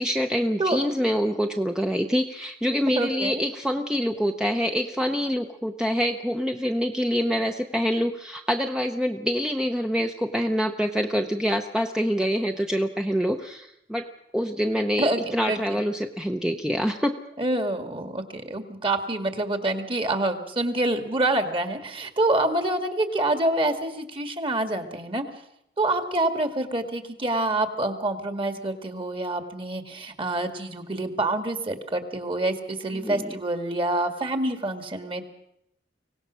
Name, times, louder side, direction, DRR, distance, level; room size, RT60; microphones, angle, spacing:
voice 1, 0.0-14.1 14.3-15.1 15.3-17.2 32.9-33.3, equal, 5° right, 4 dB, 0.7 m, -26 dB
voice 2, 2.9-3.4 15.0-15.8 17.4-25.2 25.8-35.2, right 2 dB, 30° right, 7 dB, 1.9 m, -27 dB
24.5 x 18.0 x 6.3 m, 0.78 s
head